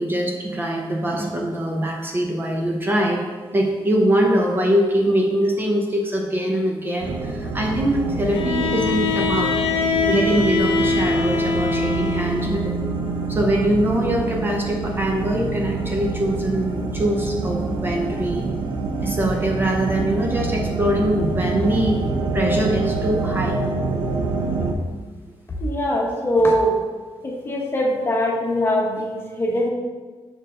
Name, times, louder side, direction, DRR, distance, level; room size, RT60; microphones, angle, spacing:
voice 1, 0.0-3.2 3.5-9.5 10.1-12.7 13.3-18.5 19.0-22.0 22.3-23.6 24.4-24.5, equal, 20° right, 0 dB, 0.6 m, -22 dB
sound 1, 7.0-24.7, right 3 dB, 60° right, 0.7 m, -26 dB
Bowed string instrument, 8.3-12.6, left 4 dB, 85° left, 0.7 m, -23 dB
voice 2, 25.6-26.7 27.2-29.7, equal, 25° left, -1 dB, 0.9 m, -22 dB
6.4 x 4.4 x 3.8 m, 1.4 s
wide cardioid pair, 170°, 9 cm